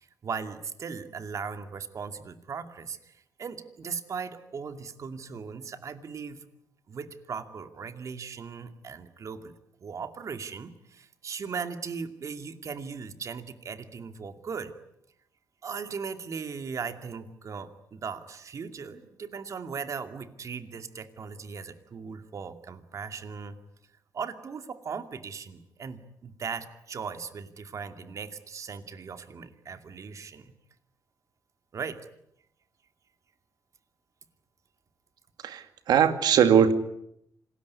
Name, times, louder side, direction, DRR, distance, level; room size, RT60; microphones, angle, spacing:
voice 1, 0.0-6.4 6.9-9.5 9.8-14.7 15.6-23.6 24.1-30.5 31.7-32.0, right 5 dB, 50° right, 9 dB, 2.5 m, -38 dB
voice 2, 35.4-36.7, right 8 dB, 80° right, 10 dB, 2.3 m, -20 dB
27.0 x 20.0 x 9.7 m, 0.76 s
cardioid pair, 110°, 7 cm